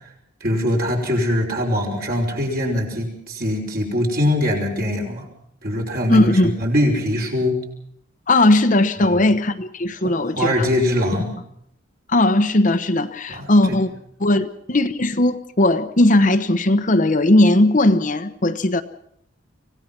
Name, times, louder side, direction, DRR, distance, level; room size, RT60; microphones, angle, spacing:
voice 1, 0.4-5.2 5.6-7.6 9.0-9.2 10.0-11.3 13.3-13.8, left 1 dB, 50° right, 1 dB, 5.6 m, -22 dB
voice 2, 6.1-6.5 8.3-10.7 12.1-13.9 14.2-18.8, left 1 dB, 40° left, 9 dB, 1.0 m, -17 dB
25.5 x 17.5 x 6.0 m, 0.71 s
head